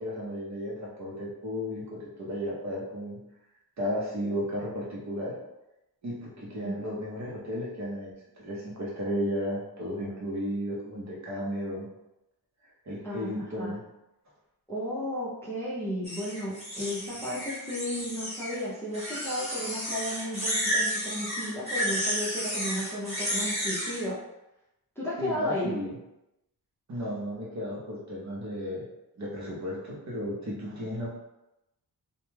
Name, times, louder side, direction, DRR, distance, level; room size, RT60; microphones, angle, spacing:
voice 1, 0.0-3.2 3.8-5.4 6.0-11.9 12.8-13.8 25.2-25.9 26.9-28.8 29.2-31.2, equal, 50° right, -4 dB, 0.7 m, -34 dB
voice 2, 14.7-24.2 25.0-25.7, equal, 5° left, -8 dB, 0.5 m, -33 dB
sound 1, 16.0-18.6 18.9-24.0, equal, 15° right, 1.1 m, -32 dB
2.2 x 2.1 x 3.1 m, 0.92 s
wide cardioid pair, 165°, 37 cm